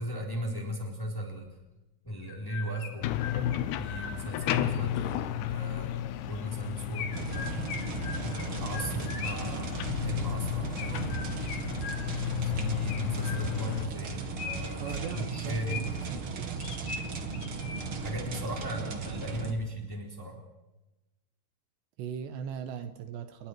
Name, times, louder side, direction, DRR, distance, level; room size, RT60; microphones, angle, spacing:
voice 1, 0.0-1.5 2.0-3.1 3.8-7.8 8.3-11.2 12.5-15.9 18.0-20.4, equal, 5° left, 0 dB, 3.1 m, -37 dB
Chirp tweet, 2.2-4.9 6.9-9.6 10.8-12.4 12.9-13.8 14.4-16.1 16.6-18.1, left 5 dB, 50° left, 3.1 m, -41 dB
sound 1, 3.0-13.9, left 11 dB, 75° left, 2.8 m, -33 dB
sound 2, 7.1-19.5, right 4 dB, 55° right, 1.5 m, -36 dB
voice 2, 14.8-16.6 18.8-19.0 22.0-23.5, right 8 dB, 75° right, 9 dB, 3.2 m, -39 dB
29.5 x 21.5 x 4.7 m, 1.0 s
omnidirectional pair, 5.3 m